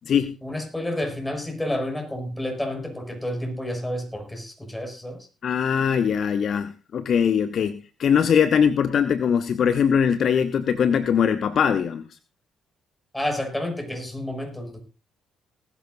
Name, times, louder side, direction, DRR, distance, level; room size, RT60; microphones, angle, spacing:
voice 1, 0.4-5.3 13.1-14.8, left 1 dB, 10° left, 3 dB, 6.2 m, -30 dB
voice 2, 5.4-12.1, left 7 dB, 50° left, 13 dB, 0.8 m, -21 dB
19.5 x 13.0 x 2.6 m, 0.30 s
figure-of-eight pair, 45°, 0 cm